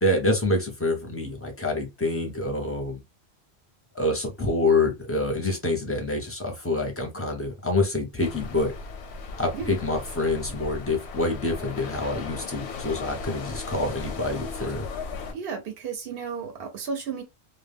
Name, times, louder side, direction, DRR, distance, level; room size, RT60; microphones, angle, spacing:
voice 1, 0.0-3.0 3.9-8.7 9.4-14.8, left 2 dB, 15° left, 0.6 m, -26 dB
sound 1, 8.2-15.3, left 4 dB, 90° left, 0.9 m, -37 dB
voice 2, 15.3-17.2, right 5 dB, 65° right, 0.8 m, -33 dB
2.2 x 2.1 x 3.3 m
omnidirectional pair, 1.1 m